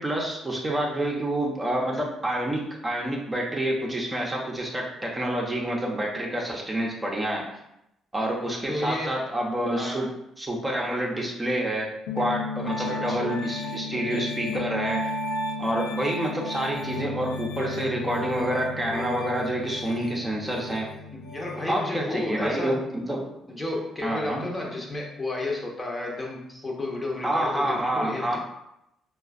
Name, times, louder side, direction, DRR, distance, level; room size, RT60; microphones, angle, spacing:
voice 1, 0.0-7.5 8.1-10.1 10.4-15.1 15.6-20.9 21.7-23.3 24.0-24.4 27.2-28.4, right 1 dB, 20° right, -2 dB, 0.7 m, -28 dB
voice 2, 8.7-9.2 9.8-10.1 12.8-13.3 21.1-22.8 23.5-28.4, left 2 dB, 25° left, -1 dB, 0.8 m, -32 dB
Piano, 12.1-21.8, left 2 dB, 70° left, 0.5 m, -33 dB
4.7 x 2.3 x 2.5 m, 0.83 s
figure-of-eight pair, 45°, 0 cm